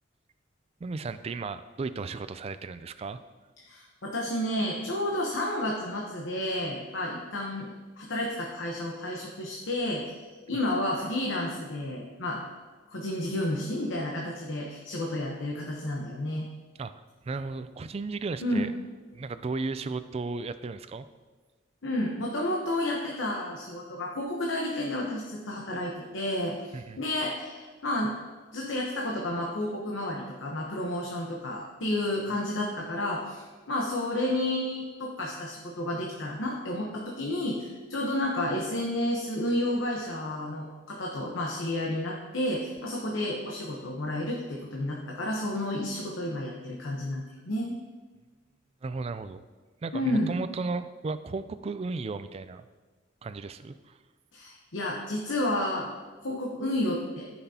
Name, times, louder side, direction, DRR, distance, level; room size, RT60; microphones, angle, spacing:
voice 1, 0.8-3.2 16.8-16.9 17.2-18.7 19.1-21.1 26.7-27.0 48.8-49.4 49.8-52.7 53.2-54.0, right 3 dB, 30° right, 12 dB, 0.3 m, -35 dB
voice 2, 3.6-10.0 10.5-12.4 12.9-16.5 18.4-18.7 21.8-28.1 28.5-47.8 49.9-50.3 54.3-55.9 56.2-57.3, left 1 dB, 75° left, -2 dB, 1.0 m, -31 dB
13.5 x 5.9 x 2.8 m, 1.4 s
head